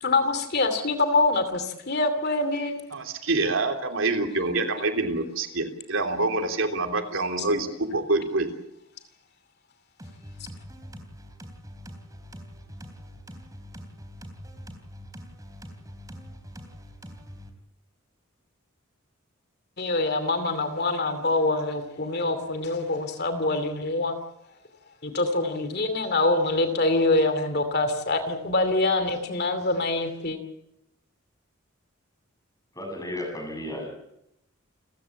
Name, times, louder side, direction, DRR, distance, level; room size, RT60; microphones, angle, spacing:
voice 1, 0.0-2.8 7.4-7.5 19.8-24.2 25.0-30.4, left 2 dB, 50° left, 8 dB, 2.7 m, -25 dB
voice 2, 2.9-8.5, right 2 dB, 70° right, 5 dB, 3.3 m, -26 dB
sound 1, 10.0-17.5, equal, 15° right, 3.6 m, -44 dB
voice 3, 32.7-33.9, left 1 dB, 15° left, 3 dB, 7.7 m, -33 dB
29.5 x 15.0 x 8.6 m, 0.80 s
head